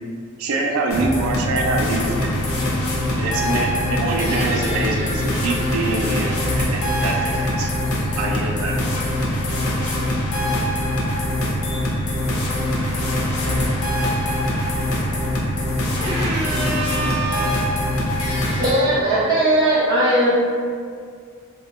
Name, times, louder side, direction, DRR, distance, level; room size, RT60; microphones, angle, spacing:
voice 1, 0.4-2.4 3.2-8.8, right 2 dB, 90° right, 0 dB, 0.3 m, -25 dB
sound 1, 0.9-18.7, left 1 dB, 85° left, 0.5 m, -23 dB
voice 2, 12.1-16.3, left 1 dB, 30° left, -3 dB, 0.3 m, -39 dB
voice 3, 16.0-17.6 18.6-20.3, right 1 dB, 20° right, -10 dB, 0.8 m, -20 dB
3.0 x 2.0 x 2.3 m, 2.1 s
head